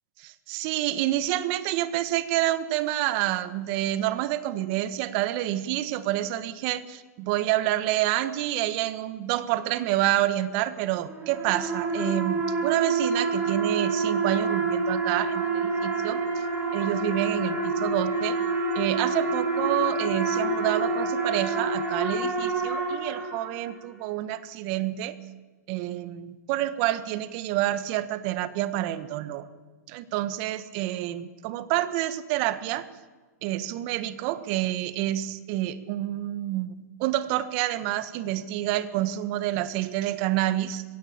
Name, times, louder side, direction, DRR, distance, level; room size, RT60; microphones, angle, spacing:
voice 1, 0.2-16.2 16.7-18.4 18.7-25.2 25.7-29.5 29.9-32.9 33.4-40.8, right 14 dB, 45° right, 13 dB, 1.5 m, -28 dB
sound 1, 11.0-23.8, right 3 dB, 20° right, 4.9 m, -27 dB
20.0 x 16.5 x 8.8 m, 1.3 s
hypercardioid pair, 135°, 9 cm